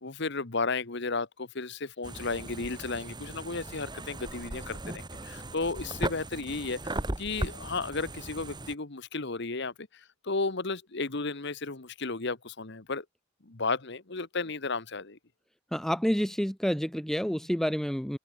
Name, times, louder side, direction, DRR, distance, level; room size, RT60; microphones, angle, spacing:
voice 1, 0.0-9.9 10.2-13.0 13.4-15.2, left 3 dB, 60° left, 1.5 m, -33 dB
sound 1, 2.0-8.7, right 1 dB, 20° right, 2.2 m, -37 dB
voice 2, 15.7-18.2, equal, ahead, 0.8 m, -28 dB
open air
head